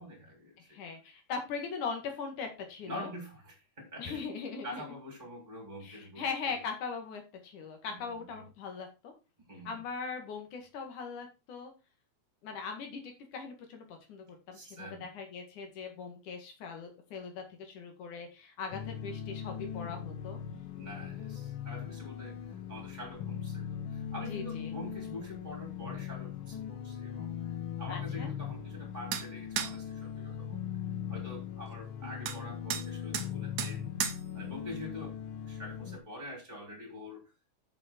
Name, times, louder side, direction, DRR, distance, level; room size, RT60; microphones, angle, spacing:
voice 1, 0.0-0.8 2.8-4.2 4.6-6.5 7.9-8.3 9.5-9.8 14.5-15.1 20.7-27.5 27.8-30.6 31.1-33.9 34.3-35.2 35.5-37.3, left 1 dB, 15° right, 0 dB, 3.3 m, -45 dB
voice 2, 0.7-3.1 4.0-4.8 5.8-9.1 9.6-11.7 12.4-20.4 24.3-24.7 27.9-28.3, left 5 dB, 80° left, 4 dB, 3.4 m, -40 dB
sound 1, 18.7-36.0, left 9 dB, 65° left, 1.3 m, -40 dB
sound 2, 29.1-29.3 29.6-29.7 32.3-32.4 32.7-32.9 33.1-33.3 33.6-33.7 34.0-34.2, right 8 dB, 70° right, 2.3 m, -33 dB
8.8 x 7.4 x 4.4 m, 0.28 s
omnidirectional pair, 3.4 m